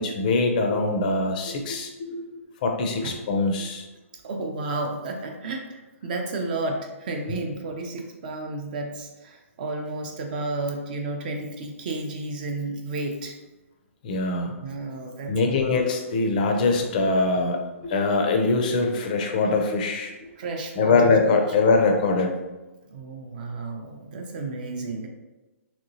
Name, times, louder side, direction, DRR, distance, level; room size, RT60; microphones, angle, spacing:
voice 1, 0.0-2.2 2.6-3.9 7.3-7.4 14.0-14.5 15.3-20.3 20.8-22.4, left 3 dB, 35° left, 3 dB, 0.4 m, -23 dB
voice 2, 4.2-13.4 14.6-15.8 20.4-21.3 22.9-25.1, right 2 dB, 35° right, 3 dB, 0.4 m, -32 dB
3.0 x 2.9 x 2.6 m, 1.1 s
hypercardioid pair, 160°, 8 cm